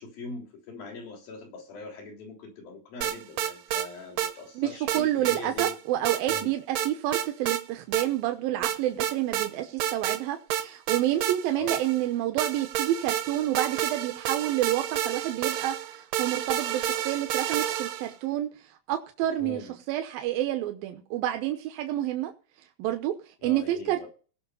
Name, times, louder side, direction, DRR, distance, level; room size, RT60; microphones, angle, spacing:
voice 1, 0.0-5.7 6.3-6.5 11.5-11.8 19.4-19.8 23.4-24.1, left 3 dB, 80° left, 1 dB, 5.2 m, -42 dB
sound 1, 3.0-3.9 4.2-4.3 4.9-5.7 6.0-6.5 6.8-7.6 7.9-8.1 8.6-9.5 9.8-10.2 10.5-12.1 12.4-18.1, right 11 dB, 70° right, 1.6 m, -30 dB
voice 2, 4.9-18.5 18.9-22.3 22.8-23.2 23.4-24.1, right 13 dB, 85° right, 5 dB, 2.8 m, -29 dB
18.5 x 6.3 x 5.6 m, 0.37 s
omnidirectional pair, 4.0 m